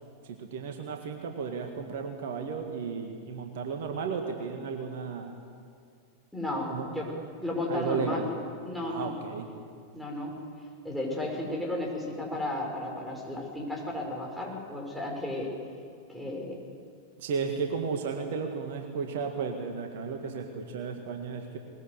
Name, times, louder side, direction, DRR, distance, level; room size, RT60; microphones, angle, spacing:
voice 1, 0.2-5.3 6.7-6.9 7.7-8.3 8.8-9.5 17.2-21.6, right 5 dB, 55° right, 4 dB, 1.9 m, -34 dB
voice 2, 6.3-7.1 7.4-8.2 8.6-9.1 9.9-10.3 10.8-15.5 16.1-16.6, left 1 dB, ahead, -2 dB, 6.0 m, -33 dB
21.0 x 20.5 x 8.2 m, 2.2 s
figure-of-eight pair, 90°, 0 cm